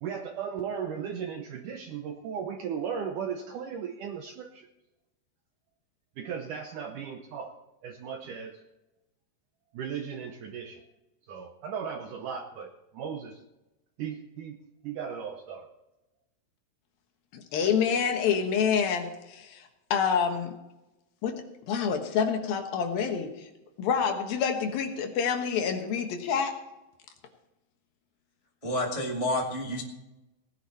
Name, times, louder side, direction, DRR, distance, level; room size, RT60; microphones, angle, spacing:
voice 1, 0.0-4.7 6.2-7.6 7.8-8.6 9.7-10.8 11.3-13.4 14.0-14.6 14.8-15.7, right 7 dB, 75° right, 4 dB, 1.9 m, -36 dB
voice 2, 17.3-20.5 21.2-21.4 21.7-23.5 23.8-26.5, left 7 dB, 70° left, 5 dB, 2.9 m, -27 dB
voice 3, 28.6-29.8, left 1 dB, 20° right, -2 dB, 0.8 m, -29 dB
18.0 x 11.0 x 4.2 m, 0.97 s
omnidirectional pair, 4.7 m